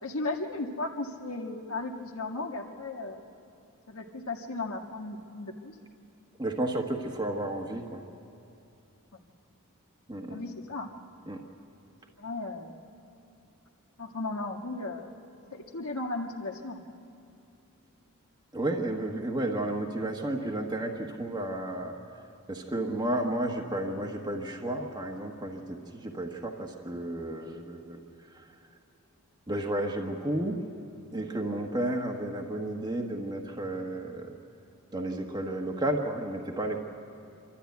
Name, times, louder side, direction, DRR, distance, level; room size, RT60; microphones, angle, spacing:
voice 1, 0.0-3.2 3.9-5.7 9.1-9.2 10.3-10.9 12.2-12.8 14.0-15.1 15.5-16.8, left 2 dB, 70° left, 2 dB, 1.8 m, -35 dB
voice 2, 6.4-8.0 10.1-10.4 11.3-11.4 18.5-22.0 22.5-28.0 28.3-28.4 29.5-30.6 31.1-34.3 34.9-36.8, right 1 dB, 20° right, 1 dB, 1.2 m, -32 dB
26.5 x 13.0 x 9.3 m, 2.7 s
head